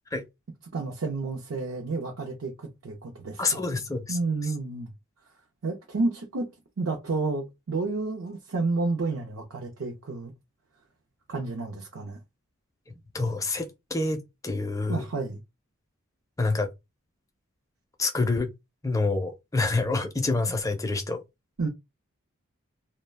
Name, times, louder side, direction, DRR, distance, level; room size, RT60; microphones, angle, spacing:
voice 1, 0.7-3.7 4.1-4.9 5.6-6.5 6.8-10.3 11.3-12.2 14.9-15.4 21.6-21.7, right 3 dB, 70° right, 0.6 m, -30 dB
voice 2, 3.4-4.2 12.9-15.0 16.4-16.7 18.0-18.5 18.8-21.2, left 3 dB, 15° left, 0.4 m, -27 dB
2.3 x 2.1 x 3.2 m
head